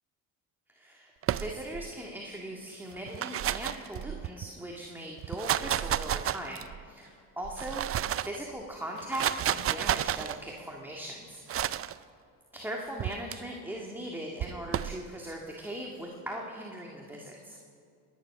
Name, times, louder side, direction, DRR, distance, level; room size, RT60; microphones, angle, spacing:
voice 1, 0.7-11.8 12.5-17.6, right 1 dB, 5° right, -1 dB, 1.9 m, -40 dB
sound 1, 1.2-1.9 2.9-4.5 5.2-6.8 7.4-8.4 9.0-10.4 11.5-11.9 13.0-13.4 14.4-15.0, right 11 dB, 35° right, 0.5 m, -31 dB
21.0 x 10.0 x 5.9 m, 2.4 s
supercardioid pair, 85°, 43 cm